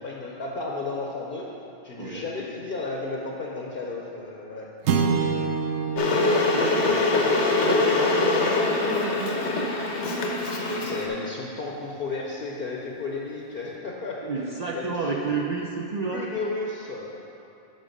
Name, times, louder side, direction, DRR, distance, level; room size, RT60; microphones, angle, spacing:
voice 1, 0.0-1.5 1.8-4.7 4.9-5.4 10.7-14.2 14.7-15.3 16.1-17.1, left 3 dB, 60° left, -2 dB, 0.9 m, -33 dB
sound 1, 4.8-9.3, right 5 dB, 80° right, 0.9 m, -29 dB
Water / Boiling, 6.0-11.1, left 3 dB, 90° left, 1.2 m, -23 dB
voice 2, 6.1-9.7 14.2-16.3, right 4 dB, 50° right, -2 dB, 0.5 m, -31 dB
6.5 x 5.0 x 6.5 m, 2.9 s
omnidirectional pair, 1.1 m